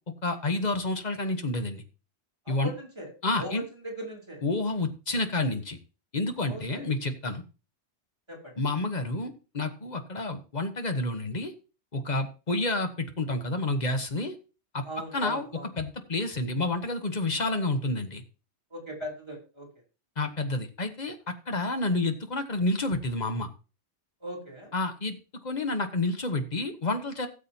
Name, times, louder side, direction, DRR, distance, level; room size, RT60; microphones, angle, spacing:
voice 1, 0.2-1.8 2.5-2.7 3.2-3.6 4.4-5.8 6.1-7.4 8.6-11.5 11.9-14.3 14.7-14.8 15.1-15.5 15.8-18.2 20.2-23.5 24.7-25.2 25.4-27.3, left 2 dB, 40° left, 7 dB, 1.3 m, -29 dB
voice 2, 2.5-3.1 3.4-4.4 6.5-6.9 8.3-8.5 14.8-15.7 18.7-19.7 24.2-24.7, equal, 25° right, -2 dB, 3.6 m, -39 dB
17.0 x 7.4 x 2.8 m, 0.33 s
omnidirectional pair, 1.2 m